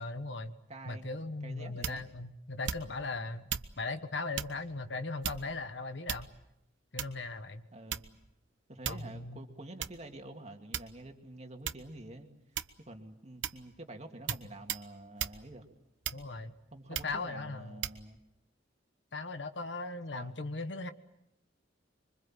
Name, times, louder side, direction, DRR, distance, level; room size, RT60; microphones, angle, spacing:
voice 1, 0.0-0.5 0.9-3.5 3.8-6.3 6.9-7.7 8.9-9.4 16.1-16.5 16.9-17.8 19.1-20.9, left 3 dB, 65° left, 9 dB, 1.4 m, -38 dB
voice 2, 0.7-1.1 1.4-2.0 7.7-8.0 8.7-12.3 12.9-15.6 16.7-18.2 20.1-20.4, right 1 dB, 35° right, 4 dB, 2.4 m, -48 dB
sound 1, 1.8-2.2 2.6-3.1 3.5-3.7 4.3-4.6 5.2-5.6 6.1-6.5 7.0-7.3 7.9-8.3 8.8-9.2 9.8-10.0 10.7-11.2 11.6-11.9 12.5-12.9 13.4-13.7 14.3-14.4 14.7-14.9 15.2-15.4 16.0-16.4 16.9-17.2 17.8-18.0, right 8 dB, 85° right, 1.0 m, -37 dB
26.0 x 24.5 x 7.5 m, 0.85 s
head